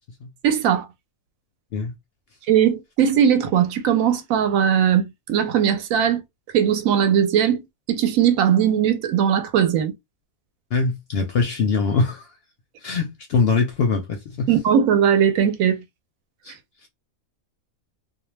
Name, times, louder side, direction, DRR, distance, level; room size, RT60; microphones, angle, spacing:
voice 1, 0.4-0.9 2.5-6.2 6.5-7.6 7.9-9.9 14.5-15.8, right 9 dB, 75° right, 1.0 m, -19 dB
voice 2, 10.7-12.3 12.8-14.5 16.4-16.5, left 4 dB, 65° left, 0.6 m, -22 dB
2.4 x 2.2 x 3.1 m
omnidirectional pair, 1.5 m